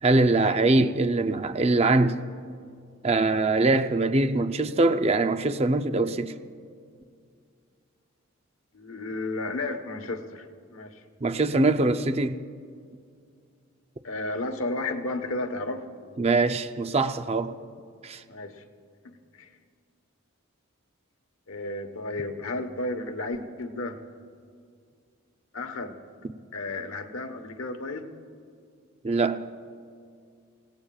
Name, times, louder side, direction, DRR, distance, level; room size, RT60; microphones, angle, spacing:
voice 1, 0.0-2.2 3.0-6.3 11.2-12.4 16.2-17.6 18.0-18.2 29.0-29.4, right 2 dB, 30° right, 0.5 m, -23 dB
voice 2, 8.7-11.0 14.0-15.9 18.3-18.6 19.0-19.5 21.5-24.0 25.5-25.9 26.5-28.1, left 2 dB, 70° left, 1.2 m, -33 dB
29.0 x 17.5 x 2.4 m
head